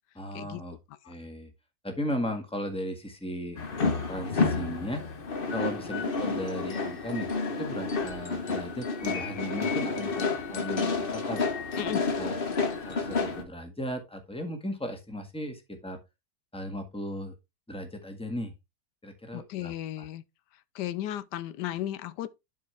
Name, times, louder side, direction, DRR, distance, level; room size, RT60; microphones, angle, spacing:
voice 1, 0.1-0.8 1.1-1.5 1.8-3.6 3.8-5.0 5.5-7.3 7.6-11.4 12.2-12.4 12.8-16.0 16.5-17.3 17.7-18.5 19.0-20.1, equal, 5° left, 1.5 m, -36 dB
sound 1, 3.6-13.4, left 4 dB, 35° left, 1.1 m, -30 dB
voice 2, 19.3-20.2 20.7-22.3, left 13 dB, 90° left, 1.2 m, -35 dB
11.5 x 4.7 x 3.4 m
omnidirectional pair, 1.8 m